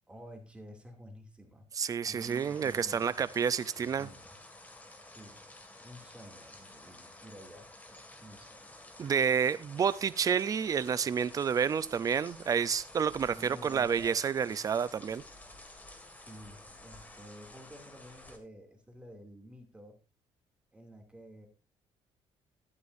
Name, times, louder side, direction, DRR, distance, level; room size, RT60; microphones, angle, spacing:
voice 1, 0.1-1.7 2.0-3.2 3.8-4.4 5.0-5.4 5.8-8.7 13.3-14.0 16.2-20.0 20.7-21.5, equal, 10° right, 3 dB, 2.5 m, -51 dB
voice 2, 1.8-4.1 9.0-15.2, right 7 dB, 35° right, 16 dB, 0.6 m, -29 dB
sound 1, 2.2-18.4, left 2 dB, 15° left, 2.0 m, -52 dB
12.5 x 11.0 x 2.6 m, 0.30 s
cardioid pair, 135°, 11 cm